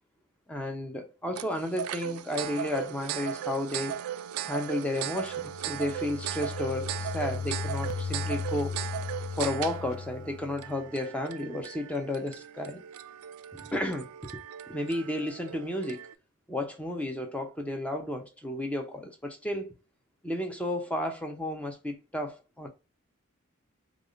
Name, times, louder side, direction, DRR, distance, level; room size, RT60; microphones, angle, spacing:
voice 1, 0.5-4.0 4.4-8.8 9.4-12.8 13.5-14.1 14.7-16.0 16.5-19.7 20.2-22.7, left 1 dB, 5° left, 0.6 m, -33 dB
sound 1, 1.4-16.1, right 10 dB, 75° right, 0.3 m, -37 dB
sound 2, 5.2-10.9, left 6 dB, 60° left, 0.3 m, -37 dB
3.4 x 2.4 x 2.4 m
head